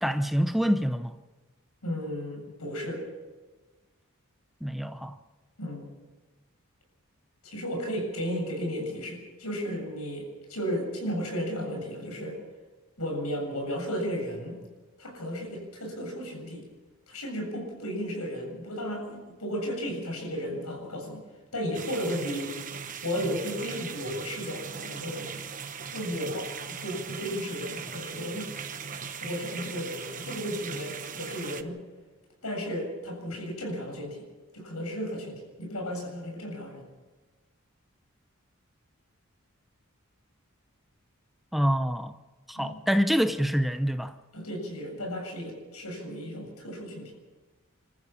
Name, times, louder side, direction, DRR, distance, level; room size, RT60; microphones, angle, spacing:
voice 1, 0.0-1.1 4.6-5.2 41.5-42.2 42.5-44.1, equal, ahead, 0.7 m, -26 dB
voice 2, 1.8-3.1 5.6-5.9 7.4-12.4 13.0-14.6 15.0-16.7 17.1-21.2 21.5-22.6 23.0-25.4 25.9-28.5 29.2-31.8 32.4-34.3 34.5-36.8 42.6-42.8 44.3-47.1, equal, 85° left, 7.6 m, -34 dB
sound 1, 21.7-31.6, right 6 dB, 35° right, 1.1 m, -39 dB
28.0 x 14.0 x 7.1 m
head